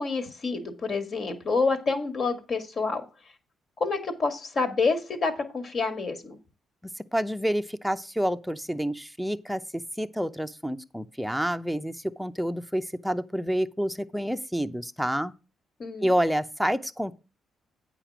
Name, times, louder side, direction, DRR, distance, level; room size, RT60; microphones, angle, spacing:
voice 1, 0.0-3.0 3.8-6.4 15.8-16.1, left 4 dB, 50° left, 2.1 m, -28 dB
voice 2, 6.8-15.3 16.0-17.1, equal, ahead, 0.7 m, -28 dB
8.7 x 5.0 x 6.0 m
cardioid pair, 90°, 0 cm